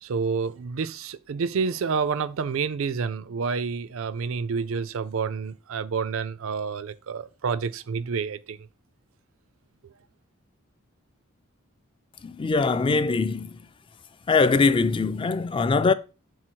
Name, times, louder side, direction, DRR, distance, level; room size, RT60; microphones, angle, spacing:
voice 1, 0.0-8.6, right 5 dB, 70° right, 0.4 m, -29 dB
voice 2, 12.2-13.5 14.3-15.9, left 4 dB, 25° left, 0.3 m, -22 dB
6.4 x 3.8 x 4.5 m
head